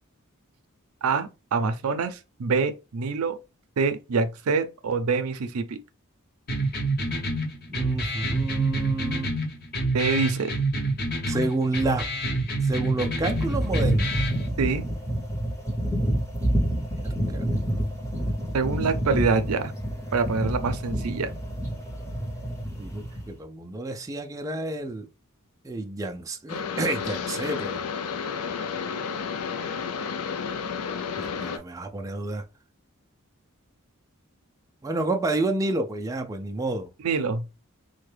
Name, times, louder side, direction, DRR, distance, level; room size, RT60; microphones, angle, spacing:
voice 1, 1.0-3.4 3.8-5.8 9.9-10.5 14.6-14.9 18.5-19.7 20.1-21.3 37.0-37.4, right 4 dB, 80° right, 0.5 m, -25 dB
sound 1, 6.5-14.5, right 1 dB, 45° left, 0.8 m, -27 dB
voice 2, 7.7-9.4 11.3-12.1 12.6-14.1 17.0-17.5 22.8-25.1 25.6-27.8 31.2-32.4 34.8-36.9, right 2 dB, 15° right, 0.3 m, -29 dB
sound 2, 13.1-23.3, equal, 15° left, 0.7 m, -28 dB
sound 3, 26.5-31.6, left 6 dB, 85° left, 0.4 m, -31 dB
3.4 x 2.1 x 3.2 m
head